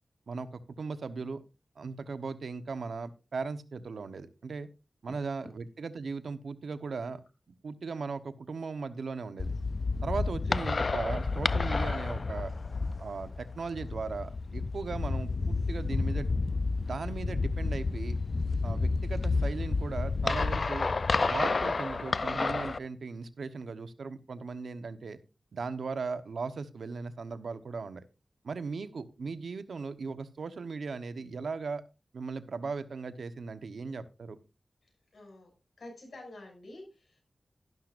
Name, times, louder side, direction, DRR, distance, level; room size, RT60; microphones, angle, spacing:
voice 1, 0.3-1.4 1.8-4.7 5.0-7.2 7.6-9.5 10.0-12.5 13.0-16.4 16.8-18.2 18.6-20.9 21.2-25.2 25.5-28.0 28.4-31.8 32.1-34.4, right 4 dB, 85° right, 12 dB, 1.0 m, -38 dB
sound 1, 9.4-22.8, left 3 dB, 50° left, 0.4 m, -30 dB
voice 2, 34.8-35.5 35.8-37.2, left 2 dB, 70° left, 2 dB, 6.4 m, -49 dB
12.0 x 12.0 x 2.5 m, 0.28 s
wide cardioid pair, 105°, 0 cm